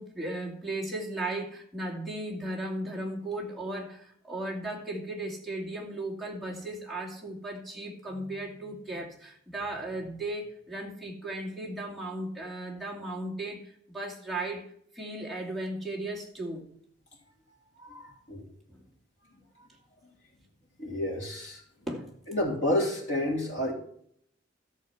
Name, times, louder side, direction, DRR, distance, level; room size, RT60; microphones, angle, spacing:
voice 1, 0.0-14.6 14.9-16.7 18.7-18.8 21.9-22.1, right 1 dB, ahead, -2 dB, 2.4 m, -36 dB
voice 2, 17.8-18.4 20.8-21.6 22.3-23.7, left 1 dB, 70° left, -1 dB, 3.3 m, -30 dB
14.0 x 6.4 x 5.8 m, 0.66 s
head